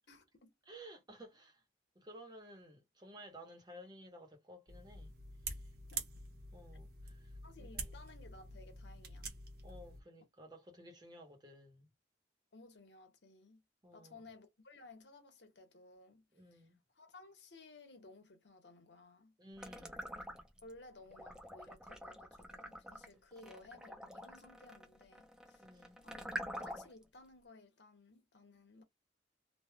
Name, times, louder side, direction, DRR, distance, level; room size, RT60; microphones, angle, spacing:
voice 1, 0.1-0.5 5.9-6.0 7.4-9.3 12.5-13.6 13.9-16.2 16.5-16.6 17.0-19.3 20.6-25.7 26.0-28.8, left 3 dB, 85° left, 1.1 m, -58 dB
voice 2, 0.7-1.6 1.9-5.1 6.5-7.9 9.6-11.9 13.8-14.3 16.3-16.8 19.4-20.1 23.5-23.6 25.6-26.0 28.8-28.9, equal, 25° right, 1.0 m, -55 dB
sound 1, 4.7-10.0, right 3 dB, 60° right, 1.1 m, -47 dB
sound 2, 19.6-20.7 21.1-27.0, equal, 5° right, 0.6 m, -46 dB
3.2 x 2.4 x 2.3 m
head